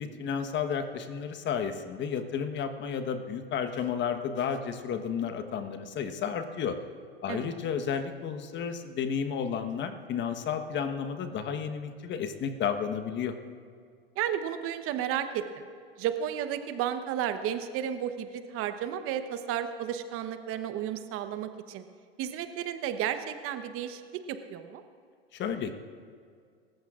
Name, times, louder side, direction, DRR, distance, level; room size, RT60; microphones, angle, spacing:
voice 1, 0.0-6.8 7.2-13.3 25.3-25.7, left 7 dB, 35° left, 8 dB, 1.2 m, -32 dB
voice 2, 14.2-15.6 16.0-21.8 22.2-24.8, right 10 dB, 45° right, 9 dB, 1.0 m, -33 dB
27.0 x 14.5 x 2.5 m, 2.1 s
hypercardioid pair, 100°, 31 cm